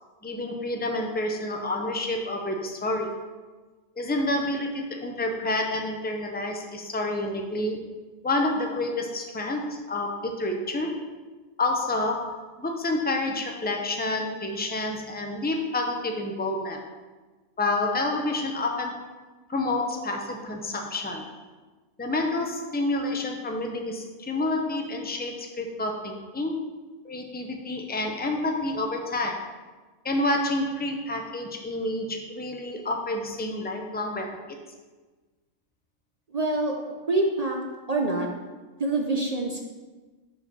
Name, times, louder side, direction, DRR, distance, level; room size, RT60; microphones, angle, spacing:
voice 1, 0.2-3.1 4.0-7.8 8.2-11.0 11.6-16.8 17.6-19.1 19.5-21.3 22.0-26.6 27.0-29.5 30.0-34.6, left 2 dB, 10° left, 2 dB, 0.4 m, -29 dB
voice 2, 36.3-36.7 37.1-37.6 37.9-38.3 38.8-39.6, right 2 dB, 40° right, 0 dB, 0.6 m, -25 dB
5.2 x 4.9 x 6.1 m, 1.3 s
omnidirectional pair, 1.3 m